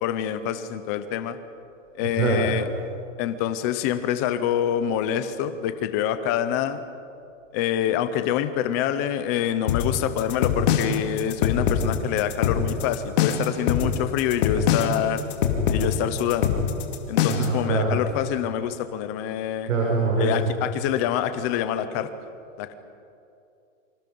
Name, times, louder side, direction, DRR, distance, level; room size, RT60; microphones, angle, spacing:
voice 1, 0.0-1.4 1.9-2.7 3.2-6.8 7.5-15.3 15.7-16.6 17.1-19.7 20.2-22.1 22.6-22.7, left 10 dB, 15° left, 11 dB, 0.4 m, -26 dB
voice 2, 2.0-2.5 17.3-18.0 19.7-20.4, right 3 dB, 80° right, -2 dB, 6.0 m, -23 dB
sound 1, 9.7-17.6, left 7 dB, 40° left, 2.4 m, -23 dB
28.0 x 25.5 x 5.4 m, 2.6 s
hypercardioid pair, 165°, 39 cm